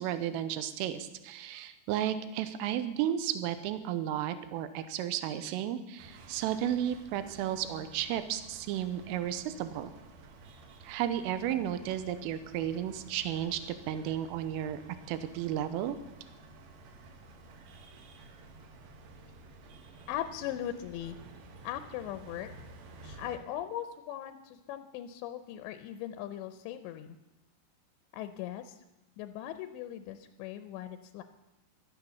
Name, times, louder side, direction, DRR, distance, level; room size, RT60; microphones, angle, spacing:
voice 1, 0.0-9.9 10.8-14.8 15.1-16.0, right 11 dB, 90° right, 11 dB, 3.4 m, -33 dB
sound 1, 6.0-23.4, right 2 dB, 60° right, 2.8 m, -52 dB
voice 2, 20.1-21.2 21.6-22.5 23.0-27.1 28.1-28.8 29.2-31.2, left 11 dB, 80° left, 10 dB, 2.7 m, -39 dB
16.5 x 12.0 x 6.9 m, 0.99 s
omnidirectional pair, 5.8 m